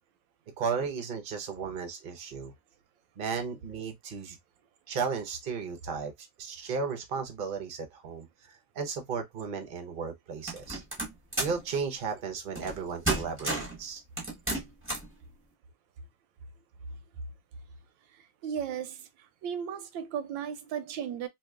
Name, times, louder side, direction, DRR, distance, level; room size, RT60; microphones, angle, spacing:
voice 1, 0.6-2.5 3.2-4.4 4.9-10.8 11.4-14.0, right 5 dB, 50° right, 0.6 m, -35 dB
sound 1, 10.5-11.6 12.5-12.8 13.0-13.8 14.2-15.1, right 2 dB, 10° right, 0.9 m, -32 dB
voice 2, 18.2-19.1 19.4-21.3, right 8 dB, 90° right, 1.3 m, -35 dB
2.9 x 2.7 x 3.4 m
omnidirectional pair, 2.0 m